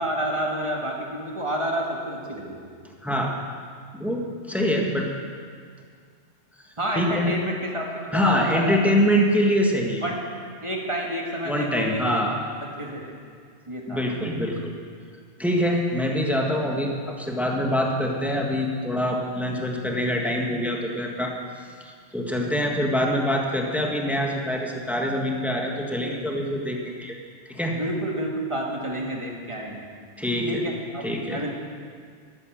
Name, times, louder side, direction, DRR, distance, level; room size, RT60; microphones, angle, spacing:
voice 1, 0.0-2.6 6.8-8.8 10.0-10.2 10.6-12.2 12.8-13.2 13.7-14.1 14.4-14.5 27.7-29.9 30.5-31.5, right 1 dB, 25° right, -1 dB, 1.9 m, -29 dB
voice 2, 3.0-3.3 3.9-5.1 6.9-7.3 8.1-10.0 11.4-12.4 13.9-14.7 15.4-21.3 21.8-27.2 27.5-27.8 30.2-30.6 31.0-31.5, equal, ahead, 0 dB, 1.4 m, -24 dB
12.5 x 12.0 x 6.3 m, 2.1 s
omnidirectional pair, 1.2 m